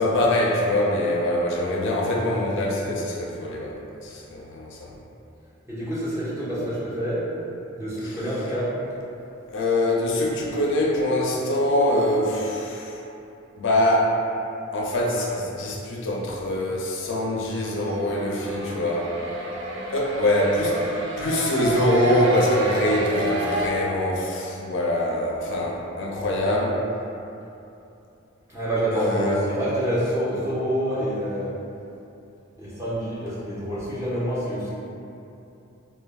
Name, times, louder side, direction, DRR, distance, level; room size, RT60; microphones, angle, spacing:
voice 1, 0.0-4.9 9.5-13.0 13.6-14.2 14.7-19.1 19.9-26.8 28.9-29.4, left 1 dB, 60° left, -2 dB, 0.4 m, -24 dB
voice 2, 5.7-7.3 7.7-8.7 28.5-31.5 32.6-34.7, equal, 15° right, -11 dB, 0.6 m, -27 dB
sound 1, 17.5-23.7, right 1 dB, 60° right, 0.3 m, -30 dB
3.1 x 2.1 x 2.3 m, 2.8 s
head